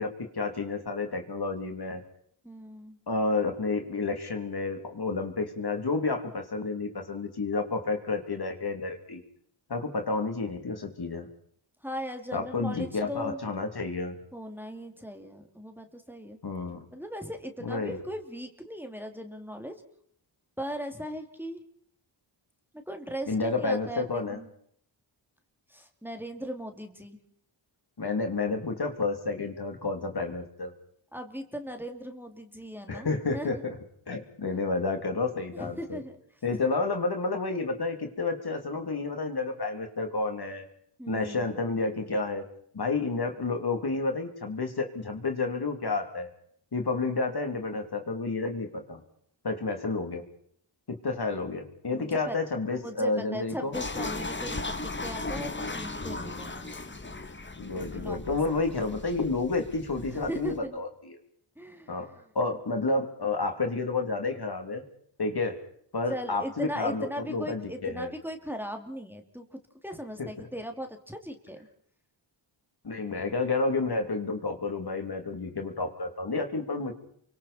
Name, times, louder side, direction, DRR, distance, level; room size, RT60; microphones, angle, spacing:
voice 1, 0.0-2.0 3.1-9.2 9.7-11.3 12.3-14.2 16.4-16.8 17.6-18.0 23.3-24.4 28.0-30.7 32.9-33.8 34.1-36.0 36.4-40.7 41.1-42.5 42.7-46.3 46.7-49.0 49.4-50.2 50.9-53.8 57.6-61.2 61.9-64.8 65.2-65.6 65.9-68.1 70.2-70.5 72.8-76.9, left 3 dB, 50° left, 5 dB, 3.0 m, -30 dB
voice 2, 2.4-3.0 11.8-13.4 14.3-16.4 16.9-19.8 20.6-21.6 22.9-24.5 25.7-27.2 31.1-33.5 34.4-34.5 35.5-36.1 41.0-41.5 51.9-52.4 52.7-56.8 57.9-58.4 60.1-60.8 61.6-62.0 66.1-71.6, equal, 5° right, 4 dB, 2.6 m, -38 dB
sound 1, 53.7-60.6, left 2 dB, 25° left, 1.5 m, -37 dB
29.5 x 24.5 x 4.3 m, 0.63 s
wide cardioid pair, 75°, 49 cm